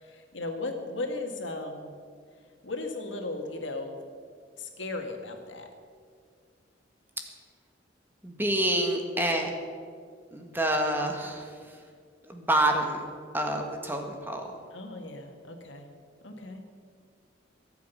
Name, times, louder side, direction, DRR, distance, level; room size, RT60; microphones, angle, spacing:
voice 1, 0.0-2.0 2.6-4.0 4.6-5.7 14.7-15.9 16.2-16.6, left 2 dB, 85° left, 3 dB, 2.0 m, -36 dB
voice 2, 8.2-9.5 10.3-11.8 12.2-14.4, right 1 dB, 10° right, 3 dB, 1.6 m, -28 dB
22.0 x 8.2 x 5.7 m, 2.1 s
head